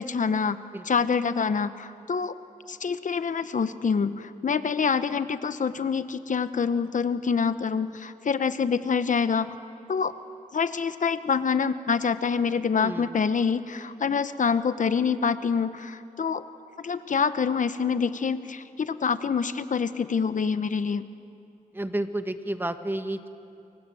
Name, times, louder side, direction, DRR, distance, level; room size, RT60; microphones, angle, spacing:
voice 1, 0.0-0.6 0.9-2.3 2.7-9.5 9.9-10.1 10.5-16.4 16.8-21.1, left 6 dB, 65° left, 12 dB, 1.1 m, -26 dB
voice 2, 12.8-13.2 21.7-23.3, right 1 dB, 15° right, 8 dB, 1.6 m, -31 dB
29.0 x 24.0 x 7.8 m, 2.6 s
wide cardioid pair, 80°, 14 cm